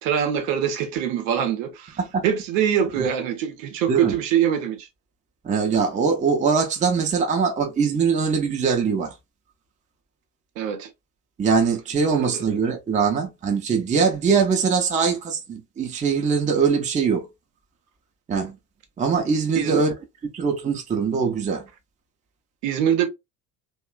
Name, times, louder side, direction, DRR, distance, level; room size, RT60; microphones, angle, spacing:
voice 1, 0.0-4.9 10.6-10.9 12.2-12.4 19.5-19.8 22.6-23.1, right 9 dB, 55° right, 0.8 m, -24 dB
voice 2, 5.4-9.1 11.4-17.3 18.3-18.6 19.0-19.9 20.3-21.7, right 5 dB, 15° right, 0.6 m, -22 dB
2.9 x 2.2 x 2.2 m
figure-of-eight pair, 60°, 48 cm